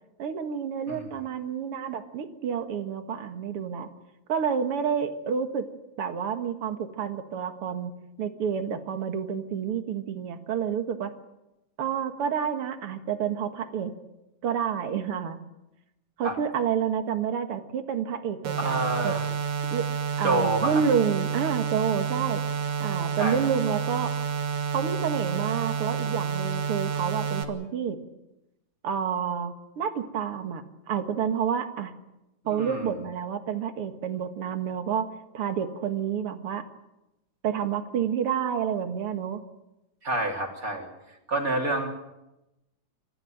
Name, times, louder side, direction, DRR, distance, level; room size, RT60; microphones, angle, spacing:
voice 1, 0.2-3.9 4.3-5.6 6.0-7.9 8.2-11.1 11.8-13.9 14.4-15.4 16.2-19.1 19.7-19.9 20.2-22.4 22.8-24.2 24.7-28.0 28.8-31.9 32.5-35.1 35.3-36.7 37.4-39.4, right 7 dB, 55° right, 7 dB, 2.4 m, -29 dB
sound 1, 18.4-27.4, right 7 dB, 70° right, 2.9 m, -29 dB
voice 2, 18.6-19.3 20.2-20.8 23.2-23.5 32.4-32.9 40.0-40.9 41.3-41.9, right 2 dB, 30° right, 1 dB, 3.5 m, -28 dB
27.5 x 14.5 x 9.1 m, 0.95 s
omnidirectional pair, 3.3 m